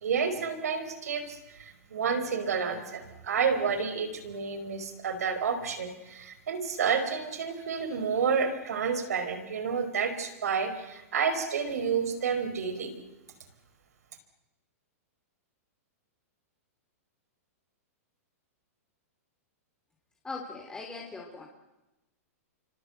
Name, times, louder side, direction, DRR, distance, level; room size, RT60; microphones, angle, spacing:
voice 1, 0.0-13.0, right 6 dB, 85° right, 8 dB, 5.0 m, -30 dB
voice 2, 20.2-21.4, left 3 dB, 10° left, 0 dB, 3.0 m, -40 dB
29.5 x 25.0 x 8.1 m, 1.0 s
hypercardioid pair, 145°, 8 cm